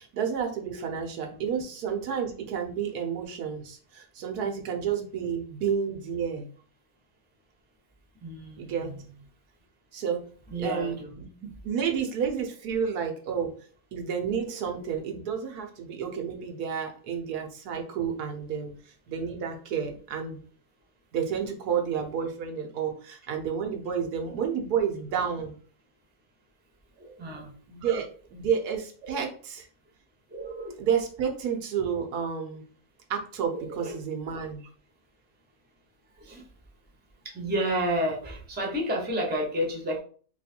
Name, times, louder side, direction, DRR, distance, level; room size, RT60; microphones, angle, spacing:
voice 1, 0.0-6.5 8.6-8.9 9.9-10.2 10.6-13.5 13.9-20.4 21.1-25.6 27.7-29.7 30.8-32.6 33.1-34.7, right 7 dB, 80° right, 3 dB, 1.3 m, -30 dB
voice 2, 8.2-9.1 10.5-11.1 27.0-27.5 29.0-29.2 30.3-30.8 33.5-34.0 36.1-36.5 37.2-40.0, equal, 10° right, 0 dB, 0.7 m, -31 dB
3.1 x 3.0 x 4.3 m, 0.44 s
omnidirectional pair, 1.6 m